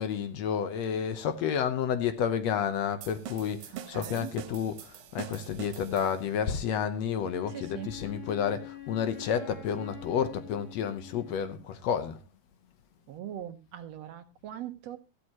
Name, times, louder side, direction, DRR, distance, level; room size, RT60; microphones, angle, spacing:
voice 1, 0.0-12.2, left 8 dB, 70° left, 2.0 m, -30 dB
sound 1, 3.0-6.4, right 11 dB, 90° right, 2.5 m, -44 dB
voice 2, 3.7-4.3 7.5-7.9 13.1-15.0, right 11 dB, 70° right, 2.0 m, -41 dB
Wind instrument woodwind instrument, 7.3-11.6, left 8 dB, 30° left, 3.4 m, -45 dB
15.0 x 12.0 x 3.0 m
omnidirectional pair, 3.4 m